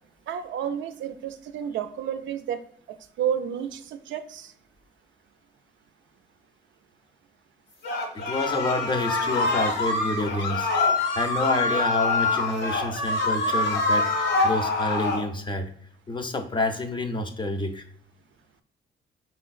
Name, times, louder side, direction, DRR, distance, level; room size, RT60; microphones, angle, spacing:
voice 1, 0.3-2.6 3.2-4.5, right 9 dB, 70° right, 9 dB, 0.4 m, -31 dB
sound 1, 7.8-15.2, left 3 dB, 70° left, 1.2 m, -25 dB
voice 2, 8.1-10.7 11.1-15.7 16.1-17.8, left 2 dB, 25° left, 6 dB, 0.5 m, -28 dB
4.3 x 3.8 x 2.4 m, 0.63 s
cardioid pair, 90°, 20 cm